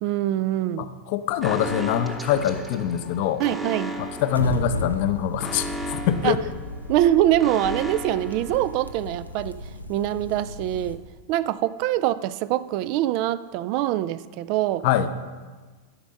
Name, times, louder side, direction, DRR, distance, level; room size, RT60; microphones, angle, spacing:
voice 1, 0.0-0.9 3.4-3.9 6.2-6.4 6.9-9.6 9.9-11.0 11.3-14.9, right 13 dB, 45° right, 16 dB, 0.3 m, -24 dB
voice 2, 0.8-3.4 4.0-6.4 14.8-15.1, left 10 dB, 50° left, 11 dB, 0.6 m, -24 dB
sound 1, 1.3-6.6, left 4 dB, 70° left, 1.3 m, -43 dB
Alarm, 1.4-9.2, right 1 dB, 10° right, 0.9 m, -36 dB
sound 2, 4.2-10.9, left 1 dB, 90° right, 0.6 m, -35 dB
12.0 x 5.1 x 6.3 m, 1.4 s
figure-of-eight pair, 90°, 0 cm